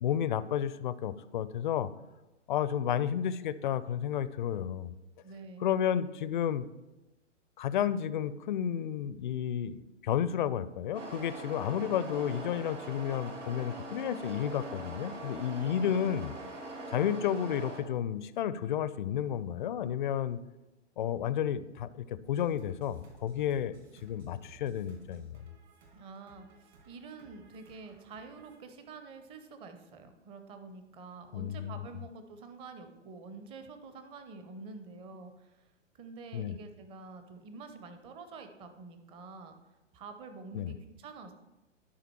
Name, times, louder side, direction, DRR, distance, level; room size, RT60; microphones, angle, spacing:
voice 1, 0.0-1.9 2.5-4.9 5.6-6.7 7.6-16.3 16.9-20.4 21.0-23.8 24.0-25.4 31.3-31.8 36.3-36.6 40.5-40.7, left 9 dB, 45° left, 15 dB, 0.4 m, -32 dB
voice 2, 5.2-5.7 25.9-35.7 35.9-39.6 39.9-41.3, right 4 dB, 15° right, 8 dB, 0.5 m, -48 dB
sound 1, 10.9-17.8, right 2 dB, 80° right, 1.8 m, -42 dB
sound 2, 22.2-28.6, right 3 dB, 55° right, 2.3 m, -58 dB
11.5 x 5.0 x 4.4 m, 1.0 s
figure-of-eight pair, 115°, 37 cm